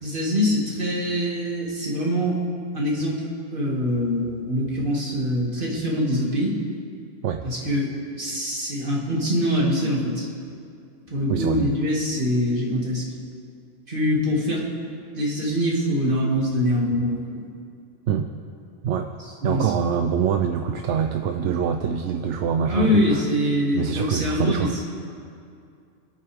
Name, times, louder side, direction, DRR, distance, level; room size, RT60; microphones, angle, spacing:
voice 1, 0.0-2.4 2.7-3.2 3.5-6.6 7.4-10.3 11.1-13.0 13.9-14.6 15.1-17.4 19.4-19.7 22.7-24.9, equal, 45° right, -4 dB, 2.5 m, -24 dB
voice 2, 11.3-11.6 18.1-18.3 18.8-19.2 19.4-23.2 23.7-24.7, right 7 dB, 80° right, 5 dB, 1.0 m, -24 dB
26.0 x 9.0 x 3.5 m, 2.4 s
omnidirectional pair, 1.2 m